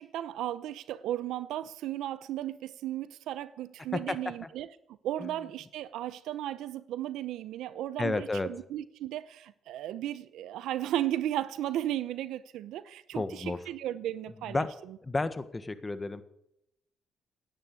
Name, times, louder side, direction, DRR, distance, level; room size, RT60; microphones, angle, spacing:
voice 1, 0.0-4.7 5.0-15.0, right 12 dB, 85° right, 0.7 m, -35 dB
voice 2, 8.0-8.5 13.1-13.6 14.5-14.7 15.0-16.2, left 3 dB, 20° left, 1.5 m, -31 dB
17.5 x 10.0 x 8.3 m
cardioid pair, 90°, 0 cm